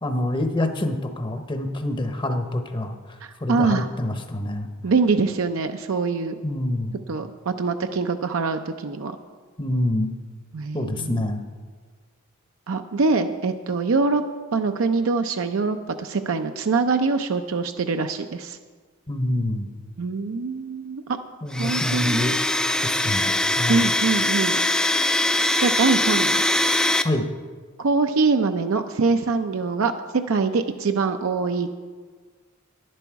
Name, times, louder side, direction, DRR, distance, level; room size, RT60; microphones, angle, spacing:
voice 1, 0.0-4.7 6.4-7.0 9.6-10.2 10.7-11.4 19.1-19.7 21.4-22.4 22.8-23.9 27.0-27.3, left 1 dB, 25° left, 7 dB, 0.8 m, -26 dB
voice 2, 3.2-3.9 4.8-6.4 7.1-9.1 10.5-11.2 12.7-14.2 14.5-18.6 20.0-21.2 21.6-22.2 23.7-24.7 25.6-26.4 27.8-29.9 30.3-31.7, right 4 dB, 70° right, 7 dB, 0.5 m, -24 dB
Domestic sounds home sounds, 21.5-27.0, left 1 dB, 5° left, 0.3 m, -22 dB
11.0 x 11.0 x 4.6 m, 1.5 s
head